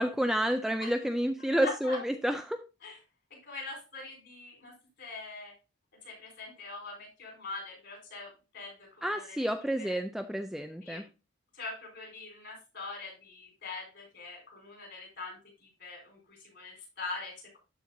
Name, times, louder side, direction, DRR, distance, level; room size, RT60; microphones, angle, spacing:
voice 1, 0.0-2.6 9.0-11.0, equal, ahead, 7 dB, 0.3 m, -30 dB
voice 2, 1.6-2.0 2.8-3.0 3.3-4.7 5.0-5.5 6.0-9.4 9.8-10.0 10.8-11.0 11.5-17.6, left 3 dB, 50° left, 0 dB, 4.4 m, -43 dB
13.0 x 4.5 x 2.7 m, 0.29 s
head